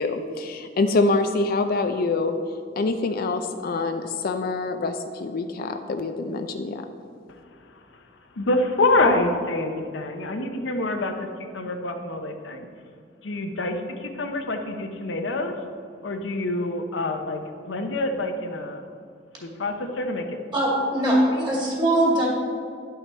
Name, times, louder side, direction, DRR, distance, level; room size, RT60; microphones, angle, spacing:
voice 1, 0.0-2.3 2.8-6.9, left 3 dB, 50° left, 7 dB, 0.4 m, -25 dB
voice 2, 7.3-7.7 8.3-11.3 11.5-12.7 13.2-15.5 16.0-18.8 19.4-20.4 21.2-21.5, left 2 dB, 85° left, 5 dB, 0.8 m, -26 dB
voice 3, 20.5-22.3, right 1 dB, 25° right, -4 dB, 2.4 m, -21 dB
10.5 x 5.8 x 4.3 m, 2.2 s
head